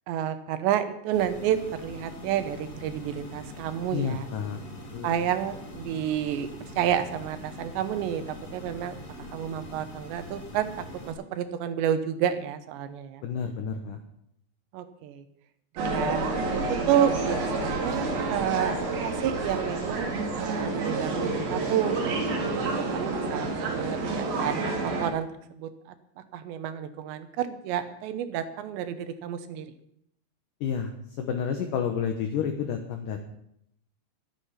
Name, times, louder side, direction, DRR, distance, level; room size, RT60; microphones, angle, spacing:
voice 1, 0.1-4.3 5.0-6.5 6.8-9.0 9.3-10.7 11.1-13.2 14.7-15.2 15.7-18.8 19.0-22.0 22.6-25.9 26.3-29.7, right 10 dB, 90° right, 10 dB, 3.3 m, -30 dB
sound 1, 1.1-11.1, left 1 dB, 40° left, 4.7 m, -43 dB
voice 2, 3.9-4.6 4.9-5.1 13.2-14.0 30.6-30.9 31.2-33.2, left 7 dB, 65° left, 5 dB, 2.3 m, -30 dB
sound 2, 15.8-25.1, right 3 dB, 65° right, 4.0 m, -29 dB
Human voice, 21.6-23.3, equal, 40° right, 4.5 m, -45 dB
22.5 x 8.4 x 5.8 m, 0.73 s
omnidirectional pair, 4.9 m